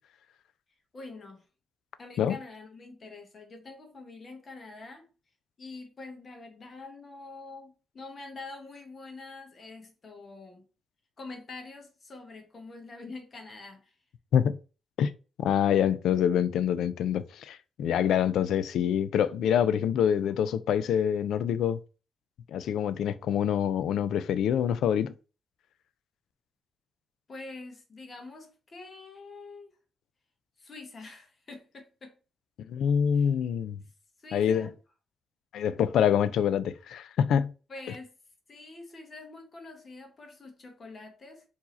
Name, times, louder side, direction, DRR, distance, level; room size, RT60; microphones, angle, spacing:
voice 1, 0.9-1.4 2.0-5.0 5.6-10.6 11.2-14.0 27.3-29.7 30.6-32.2 33.1-33.3 34.2-34.7 37.7-38.1 38.5-41.4, left 3 dB, 30° left, 1.0 m, -45 dB
voice 2, 15.4-21.8 22.5-25.1 32.7-33.8 34.3-34.7 35.5-37.5, left 8 dB, 90° left, 0.4 m, -26 dB
4.6 x 2.7 x 4.2 m
wide cardioid pair, 170°, 0 cm